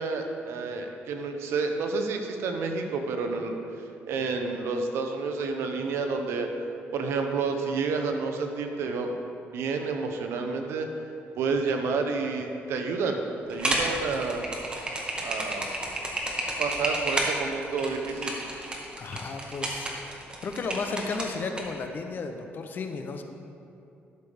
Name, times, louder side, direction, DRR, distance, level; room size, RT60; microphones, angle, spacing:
voice 1, 0.0-3.6 4.1-6.5 6.9-9.2 9.5-10.9 11.4-13.2 13.5-14.4 15.2-15.6 16.6-18.4, right 4 dB, 75° right, 4 dB, 0.9 m, -29 dB
sound 1, 13.5-21.6, right 1 dB, 20° right, 1.5 m, -31 dB
voice 2, 19.0-19.9 20.4-23.2, left 4 dB, 50° left, 6 dB, 0.8 m, -33 dB
12.5 x 6.8 x 3.5 m, 2.7 s
cardioid pair, 100°, 4 cm